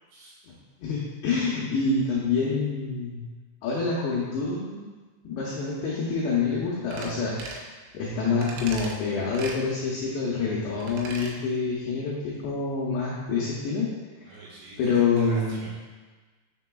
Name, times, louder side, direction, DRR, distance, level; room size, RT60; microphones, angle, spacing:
voice 1, 0.8-3.3 3.6-4.9 5.2-7.7 7.9-13.9 14.2-14.3 14.8-15.7, left 4 dB, 80° left, -5 dB, 2.5 m, -27 dB
sound 1, 6.9-7.1 7.4-7.7 8.4-8.9 9.3-9.6 10.8-11.3 11.7-11.8, right 3 dB, 85° right, 3.4 m, -38 dB
voice 2, 14.2-15.7, right 3 dB, 70° right, -6 dB, 2.9 m, -45 dB
7.0 x 6.7 x 2.3 m, 1.4 s
omnidirectional pair, 5.9 m